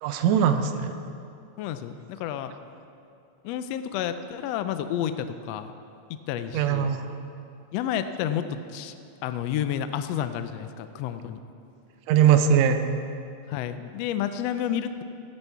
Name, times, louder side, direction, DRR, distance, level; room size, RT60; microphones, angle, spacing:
voice 1, 0.0-0.9 6.5-7.0 12.1-12.8, right 8 dB, 75° right, 7 dB, 1.8 m, -20 dB
voice 2, 1.6-2.5 3.4-5.7 6.1-7.0 7.7-9.0 9.2-11.4 13.5-15.0, left 10 dB, 85° left, 10 dB, 1.5 m, -30 dB
16.0 x 10.0 x 4.6 m, 2.6 s
omnidirectional pair, 3.5 m